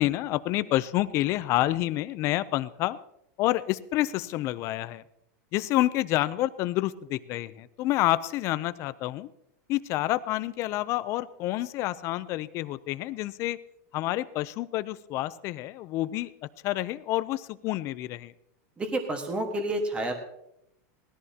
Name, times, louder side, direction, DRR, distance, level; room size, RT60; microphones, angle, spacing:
voice 1, 0.0-3.0 3.4-5.0 5.5-9.3 9.7-13.6 13.9-16.3 16.6-18.3, left 16 dB, 30° left, 15 dB, 0.5 m, -28 dB
voice 2, 18.8-20.1, right 1 dB, 15° right, 5 dB, 1.5 m, -29 dB
19.5 x 14.0 x 2.8 m, 0.78 s
supercardioid pair, 165°, 9 cm